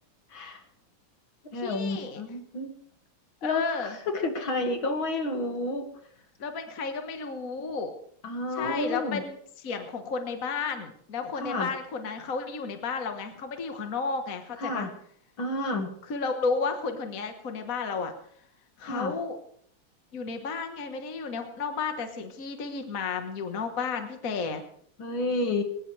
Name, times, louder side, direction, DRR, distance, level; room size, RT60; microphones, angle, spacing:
voice 1, 0.3-0.6 1.5-2.7 3.4-5.9 8.2-9.2 11.4-11.7 14.6-14.9 15.4-15.9 18.8-19.1 25.0-25.6, left 2 dB, 65° left, 4 dB, 2.9 m, -30 dB
voice 2, 1.5-2.2 3.4-4.0 6.4-7.9 8.6-9.4 9.6-14.9 16.1-18.1 18.8-19.4 20.1-24.6, left 4 dB, 45° left, 6 dB, 1.7 m, -32 dB
21.0 x 19.0 x 3.3 m, 0.63 s
omnidirectional pair, 2.3 m